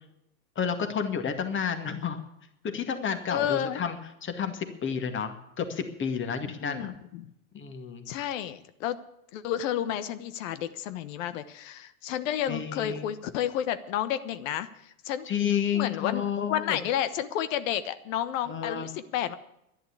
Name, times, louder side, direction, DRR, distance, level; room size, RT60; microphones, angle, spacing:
voice 1, 0.6-2.2 2.6-6.9 7.5-8.1 12.5-13.1 15.3-16.8 18.5-18.9, left 7 dB, 25° left, 8 dB, 2.2 m, -31 dB
voice 2, 3.3-3.8 6.4-7.3 8.1-9.0 9.3-15.3 15.7-16.2 16.5-19.3, left 10 dB, 60° left, 14 dB, 1.3 m, -31 dB
11.5 x 11.0 x 8.4 m, 0.82 s
hypercardioid pair, 100°, 43 cm